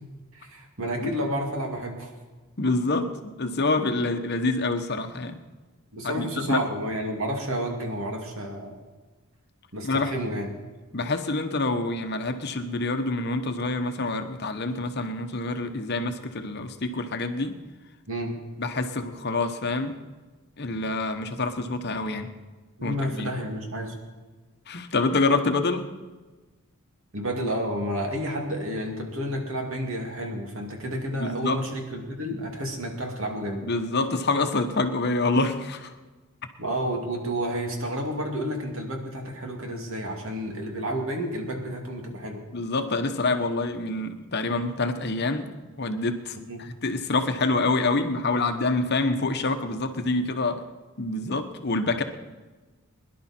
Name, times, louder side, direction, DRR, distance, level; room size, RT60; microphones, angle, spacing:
voice 1, 0.3-2.1 5.9-8.7 9.7-10.5 18.1-18.3 22.8-24.0 27.1-33.7 36.6-42.4 46.4-46.6, equal, 65° right, 2 dB, 2.5 m, -30 dB
voice 2, 2.6-5.4 6.0-6.6 9.8-10.1 10.9-17.6 18.6-20.0 20.6-22.3 22.8-23.3 24.7-25.9 31.1-31.6 33.6-35.9 42.5-45.5 45.8-50.6 51.0-52.0, left 3 dB, 50° left, 7 dB, 1.0 m, -26 dB
22.0 x 11.0 x 4.4 m, 1.2 s
head